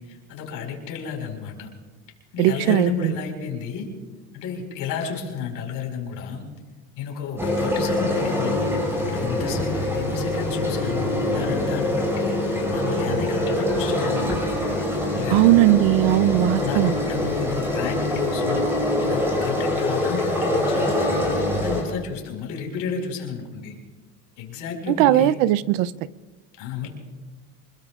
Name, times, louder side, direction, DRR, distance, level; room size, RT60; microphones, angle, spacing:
voice 1, 0.0-1.7 2.3-3.9 4.3-6.5 7.0-8.7 9.0-14.8 15.1-15.6 16.6-18.7 19.0-21.3 21.6-23.7 24.4-25.4 26.6-26.9, left 6 dB, 60° left, 1 dB, 4.9 m, -32 dB
voice 2, 2.4-3.1 15.3-16.9 25.0-25.9, right 15 dB, 75° right, 18 dB, 0.6 m, -18 dB
sound 1, 7.4-21.8, left 1 dB, 5° right, 5.3 m, -24 dB
26.5 x 21.0 x 2.5 m, 1.3 s
cardioid pair, 140°, 38 cm